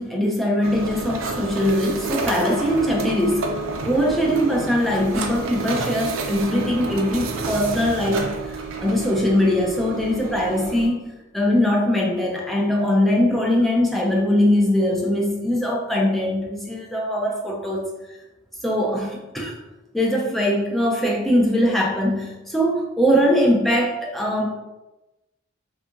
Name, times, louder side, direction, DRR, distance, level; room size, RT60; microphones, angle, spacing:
voice 1, 0.0-3.5 3.8-11.0 11.3-17.9 18.6-19.6 19.9-24.5, left 1 dB, ahead, -2 dB, 0.3 m, -21 dB
sound 1, 0.6-10.9, right 3 dB, 75° right, 0.4 m, -30 dB
2.8 x 2.3 x 2.5 m, 1.0 s
head